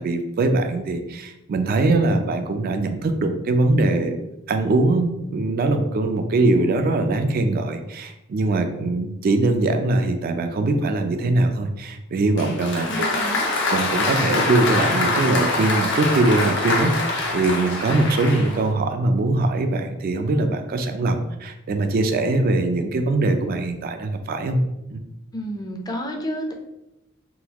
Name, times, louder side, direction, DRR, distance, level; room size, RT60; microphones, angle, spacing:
voice 1, 0.0-4.2 4.5-12.9 13.1-13.3 13.7-24.6 24.9-25.0, right 2 dB, 45° right, 7 dB, 0.3 m, -22 dB
Applause, 12.4-18.7, left 2 dB, 60° left, 0.7 m, -24 dB
voice 2, 12.8-13.5 25.3-26.5, equal, 20° left, 3 dB, 0.4 m, -30 dB
3.8 x 2.3 x 2.8 m, 0.90 s
head